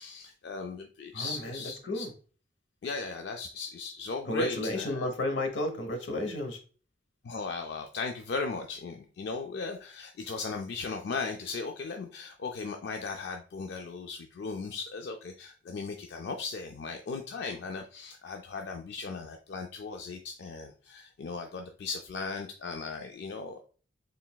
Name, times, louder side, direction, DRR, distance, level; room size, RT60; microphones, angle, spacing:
voice 1, 0.0-2.1 2.8-5.1 7.2-23.6, left 4 dB, 65° left, 4 dB, 0.4 m, -37 dB
voice 2, 1.1-2.1 4.3-6.6, left 1 dB, 85° left, 5 dB, 0.9 m, -32 dB
3.9 x 3.3 x 2.2 m, 0.39 s
head